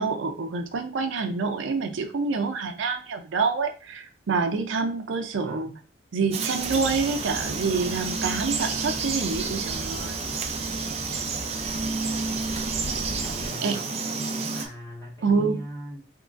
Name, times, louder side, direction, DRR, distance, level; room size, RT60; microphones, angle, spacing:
voice 1, 0.0-5.7 6.1-10.4 13.6-13.8 15.2-15.6, right 4 dB, 85° right, 5 dB, 0.5 m, -27 dB
voice 2, 5.3-5.7 13.2-16.0, right 1 dB, 15° left, -6 dB, 1.8 m, -40 dB
Frog, 6.3-14.7, right 4 dB, 35° right, 0.5 m, -30 dB
sound 1, 6.6-13.5, right 1 dB, 60° right, 1.0 m, -39 dB
3.7 x 3.0 x 2.4 m, 0.37 s
head